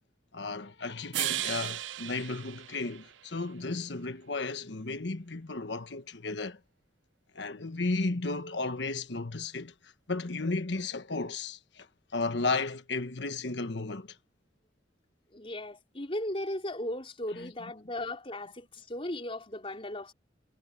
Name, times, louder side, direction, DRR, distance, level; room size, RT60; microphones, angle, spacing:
voice 1, 0.3-6.6 7.3-11.9 12.1-14.2 17.3-17.5, left 3 dB, 70° left, 1.3 m, -34 dB
sound 1, 1.1-3.5, right 14 dB, 85° right, 0.5 m, -35 dB
voice 2, 15.3-20.1, left 1 dB, 30° left, 4.3 m, -37 dB
head